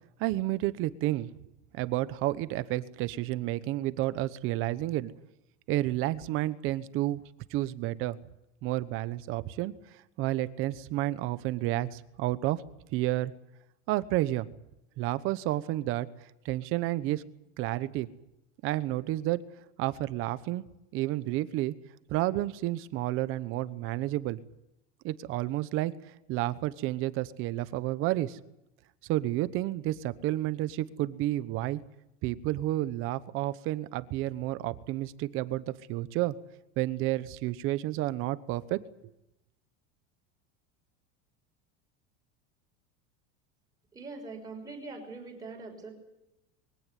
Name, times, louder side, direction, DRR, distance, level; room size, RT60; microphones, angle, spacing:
voice 1, 0.2-1.3 1.7-5.1 5.7-7.2 7.5-8.2 8.6-9.7 10.2-12.6 12.9-13.3 13.9-14.5 15.0-16.1 16.4-17.2 17.6-18.1 18.6-19.4 19.8-20.6 20.9-21.7 22.1-24.4 25.0-25.9 26.3-28.4 29.1-31.8 32.2-36.3 36.8-38.8, right 16 dB, 40° right, 15 dB, 1.0 m, -30 dB
voice 2, 43.9-45.9, right 3 dB, 10° right, 1 dB, 5.7 m, -42 dB
22.5 x 17.0 x 9.8 m, 0.89 s
cardioid pair, 175°, 33 cm